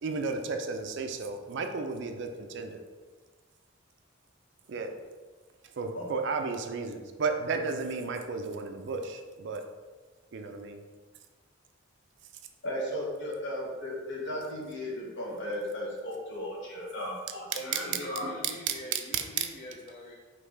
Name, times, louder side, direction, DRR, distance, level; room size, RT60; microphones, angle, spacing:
voice 1, 0.0-2.8 4.7-4.9 5.8-9.6 10.3-10.8, right 4 dB, 55° right, 5 dB, 0.4 m, -33 dB
voice 2, 12.6-18.3, left 1 dB, 60° left, -3 dB, 1.1 m, -36 dB
voice 3, 17.5-20.2, equal, 35° left, 0 dB, 0.4 m, -42 dB
5.2 x 3.0 x 3.3 m, 1.4 s
head